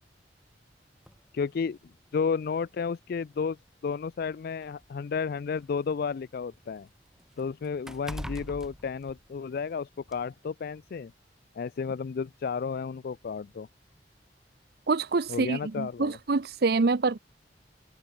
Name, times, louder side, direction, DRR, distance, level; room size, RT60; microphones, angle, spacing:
sound 1, 1.0-1.2 2.3-2.4 2.8-2.9 3.9-5.9 6.2-9.7 10.1-10.2, equal, 5° right, 1.3 m, -43 dB
voice 1, 1.3-1.8 2.1-3.6 3.8-6.9 7.4-11.1 11.6-13.7 15.3-16.2, left 5 dB, 55° left, 0.4 m, -32 dB
voice 2, 14.9-17.2, right 3 dB, 60° right, 0.7 m, -26 dB
open air
head